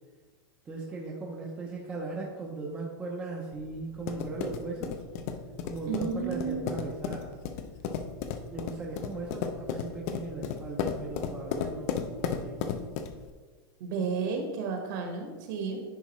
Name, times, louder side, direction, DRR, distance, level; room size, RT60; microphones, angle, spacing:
voice 1, 0.7-5.0 5.6-7.4 8.5-12.6, right 3 dB, 10° right, -2 dB, 0.6 m, -38 dB
sound 1, 3.5-13.3, left 7 dB, 35° left, 0.5 m, -35 dB
voice 2, 5.9-6.7 13.8-15.8, right 5 dB, 50° right, 3 dB, 1.4 m, -32 dB
10.0 x 4.7 x 3.1 m, 1.4 s
supercardioid pair, 175°, 13 cm